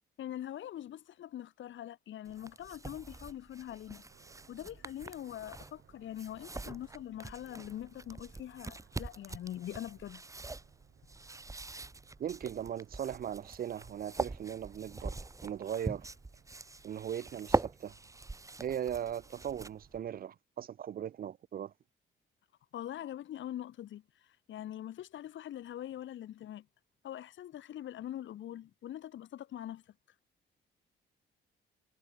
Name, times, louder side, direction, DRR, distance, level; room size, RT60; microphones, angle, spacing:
voice 1, 0.2-4.0 4.5-10.4 22.7-26.7 27.0-29.8, left 12 dB, 70° left, 2.6 m, -43 dB
sound 1, 2.2-20.0, right 3 dB, 15° right, 1.3 m, -42 dB
sound 2, 4.1-20.2, right 12 dB, 75° right, 7.7 m, -66 dB
voice 2, 12.2-16.1 16.8-17.9 18.6-21.7, right 9 dB, 50° right, 0.5 m, -38 dB
cardioid pair, 90°, 20 cm